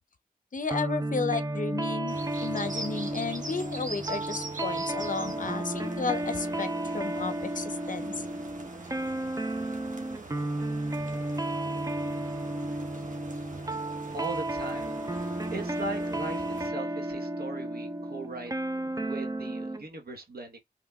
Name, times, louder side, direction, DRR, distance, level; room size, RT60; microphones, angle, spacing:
voice 1, 0.5-6.7 6.9-8.2, left 4 dB, 55° left, 0.7 m, -33 dB
sound 1, 0.7-19.8, right 1 dB, 20° right, 0.6 m, -33 dB
sound 2, 2.1-16.7, right 2 dB, 55° right, 1.3 m, -43 dB
voice 2, 14.1-20.6, right 2 dB, 80° right, 1.2 m, -39 dB
5.6 x 3.5 x 2.4 m
cardioid pair, 55°, 16 cm